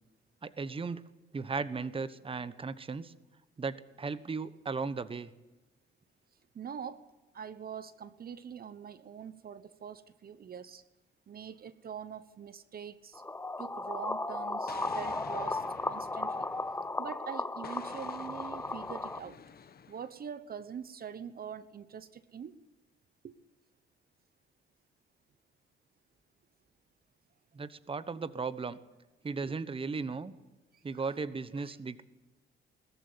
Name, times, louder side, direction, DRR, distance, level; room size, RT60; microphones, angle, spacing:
voice 1, 0.4-1.0 1.3-3.1 3.6-5.3 27.5-28.8 29.2-30.3 30.8-32.0, right 4 dB, 25° right, 15 dB, 1.2 m, -36 dB
voice 2, 6.5-7.0 7.3-10.8 11.3-13.2 13.6-16.5 17.0-19.4 19.9-22.5 23.2-23.4 29.4-29.6 30.9-31.2 31.5-31.8, right 7 dB, 50° right, 14 dB, 1.1 m, -44 dB
sound 1, 13.1-19.2, left 2 dB, 10° left, 0.8 m, -35 dB
Explosion, 14.7-17.1 17.6-20.2, left 7 dB, 50° left, 1.5 m, -50 dB
21.0 x 14.0 x 9.7 m, 1.1 s
cardioid pair, 90°, 20 cm